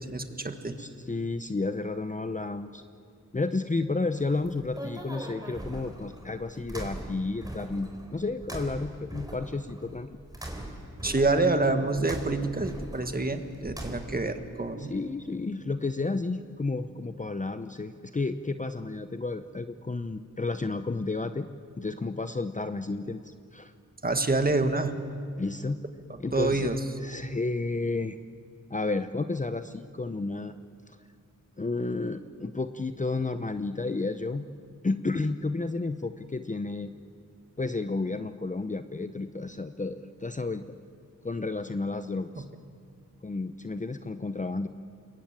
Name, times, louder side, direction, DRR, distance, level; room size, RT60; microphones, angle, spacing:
voice 1, 0.0-0.8 11.0-14.9 24.0-25.0 26.1-26.8 42.4-42.5, right 3 dB, 30° right, 7 dB, 1.8 m, -27 dB
voice 2, 0.8-2.8 3.3-10.2 14.9-21.5 21.8-23.7 25.4-25.8 26.2-26.7 27.0-28.2 28.7-30.5 31.6-34.5 34.8-36.9 37.6-40.7 41.2-42.4 43.2-44.7, left 3 dB, 25° left, 10 dB, 0.7 m, -31 dB
sound 1, 4.2-14.4, right 1 dB, 10° right, 3.9 m, -41 dB
29.0 x 22.0 x 9.0 m, 2.3 s
wide cardioid pair, 120°, 31 cm